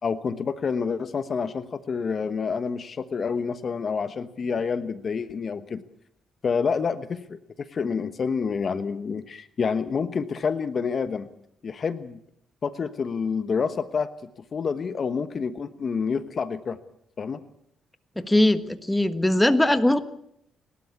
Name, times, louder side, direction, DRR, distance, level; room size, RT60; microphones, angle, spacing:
voice 1, 0.0-5.8 6.4-11.3 11.6-12.2 12.6-14.1 14.5-16.8 17.2-17.4, left 5 dB, 45° left, 12 dB, 1.2 m, -28 dB
voice 2, 18.2-20.0, left 1 dB, 10° left, 10 dB, 1.5 m, -20 dB
30.0 x 12.5 x 8.6 m, 0.73 s
cardioid pair, 90°, 0 cm